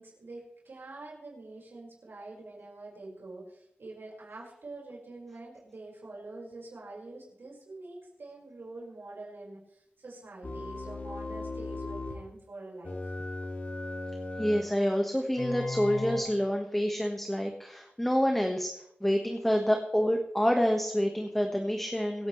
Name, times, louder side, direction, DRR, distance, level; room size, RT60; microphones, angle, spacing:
voice 1, 0.0-13.1, right 2 dB, 80° right, -4 dB, 5.2 m, -46 dB
sound 1, 10.4-12.2 12.8-14.7 15.4-16.2, left 2 dB, 45° left, 2.5 m, -37 dB
voice 2, 14.4-18.7 19.0-22.3, equal, 5° left, 2 dB, 1.5 m, -27 dB
24.5 x 9.4 x 3.3 m, 0.75 s
wide cardioid pair, 90°, 4 cm